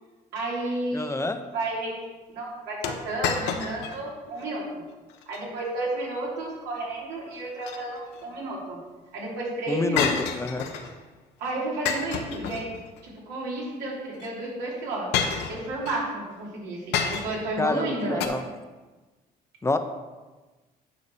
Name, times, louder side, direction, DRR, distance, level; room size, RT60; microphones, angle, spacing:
voice 1, 0.3-1.2 1.5-1.9 2.3-4.8 5.3-8.8 9.1-10.1 11.4-18.3, right 2 dB, 90° right, -4 dB, 3.1 m, -32 dB
voice 2, 0.9-1.4 9.7-10.7 17.6-18.4 19.6-19.8, left 3 dB, 15° left, 8 dB, 0.6 m, -27 dB
sound 1, 2.8-4.0 4.4-4.5 5.1-5.4 7.4-8.2 10.0-10.9 11.8-13.0 14.1-14.3 15.1-16.0 16.9-17.5 18.2-18.3, left 7 dB, 85° left, 1.0 m, -29 dB
9.8 x 4.2 x 6.8 m, 1.2 s
cardioid pair, 110°, 17 cm